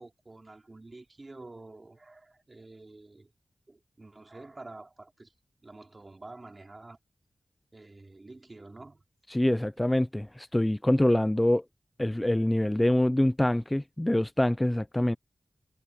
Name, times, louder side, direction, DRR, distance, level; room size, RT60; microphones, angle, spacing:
voice 1, 0.0-3.3 3.7-5.3 5.6-7.0 7.7-9.0, right 2 dB, 35° right, 4.1 m, -48 dB
voice 2, 9.3-11.6 12.0-15.2, left 1 dB, 15° left, 0.5 m, -25 dB
wide cardioid pair, 90°, 0 cm